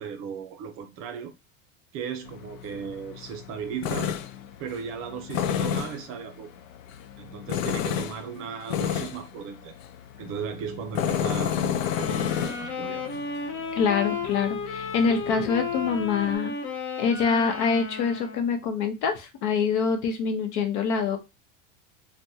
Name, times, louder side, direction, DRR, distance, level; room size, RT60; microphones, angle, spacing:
voice 1, 0.0-1.3 1.9-4.1 4.6-6.5 7.2-9.7 10.2-13.1, right 7 dB, 35° right, 0.4 m, -36 dB
Tools, 2.3-16.4, left 9 dB, 90° left, 0.5 m, -32 dB
sound 1, 11.8-18.6, left 4 dB, 30° left, 0.5 m, -33 dB
voice 2, 13.8-16.5 17.0-21.2, left 5 dB, 60° left, 0.8 m, -25 dB
3.3 x 2.2 x 2.7 m
supercardioid pair, 130°, 38 cm